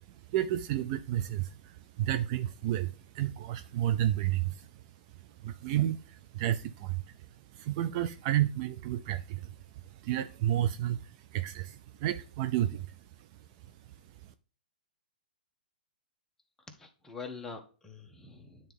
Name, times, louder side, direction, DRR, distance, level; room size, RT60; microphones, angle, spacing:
voice 1, 0.1-4.7 5.4-9.6 9.8-13.3, right 12 dB, 40° right, 0.4 m, -31 dB
voice 2, 16.7-18.7, left 4 dB, 10° left, 1.0 m, -45 dB
9.2 x 3.6 x 3.4 m
hypercardioid pair, 130°, 5 cm